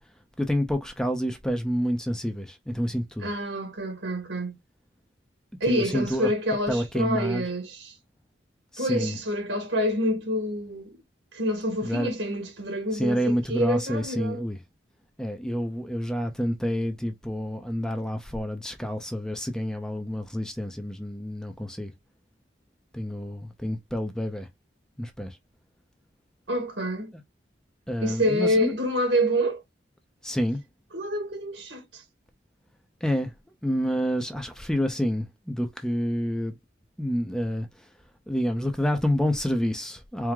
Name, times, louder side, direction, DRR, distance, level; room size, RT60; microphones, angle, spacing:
voice 1, 0.4-3.3 5.7-6.3 6.7-7.4 8.7-9.2 11.8-12.1 12.9-14.6 15.2-21.9 22.9-24.5 25.0-25.4 27.9-28.7 30.2-30.6 33.0-33.3 33.6-36.6 37.0-37.9 38.3-40.3, equal, 5° left, 0.6 m, -28 dB
voice 2, 3.2-4.6 5.6-8.0 8.8-11.0 11.3-14.4 26.5-27.1 28.0-29.6 30.9-32.0, equal, 75° right, 2.3 m, -27 dB
4.6 x 2.1 x 3.6 m
head